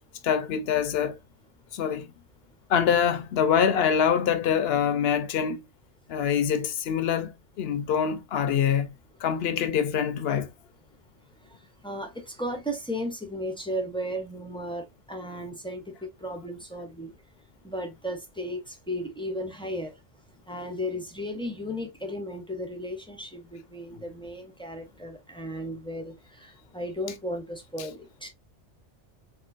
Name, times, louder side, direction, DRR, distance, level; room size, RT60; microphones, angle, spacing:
voice 1, 0.2-1.2 1.7-2.1 2.7-5.6 6.1-7.3 7.6-8.9 9.2-10.5, left 8 dB, 65° left, 0.7 m, -24 dB
voice 2, 11.5-17.1 17.6-19.9 20.5-28.3, equal, 5° left, 0.4 m, -35 dB
3.6 x 2.4 x 2.4 m
omnidirectional pair, 1.2 m